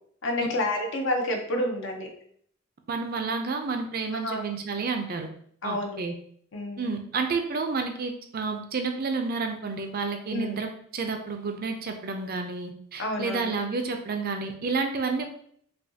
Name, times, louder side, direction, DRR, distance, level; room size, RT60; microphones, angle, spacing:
voice 1, 0.2-2.1 4.1-4.4 5.6-6.0 6.5-6.9 10.3-10.6 13.0-13.5, left 1 dB, 60° left, 2 dB, 0.7 m, -29 dB
voice 2, 2.9-5.3 5.6-6.1 6.8-15.3, right 4 dB, 45° right, 5 dB, 0.5 m, -30 dB
5.5 x 2.3 x 2.7 m, 0.62 s
head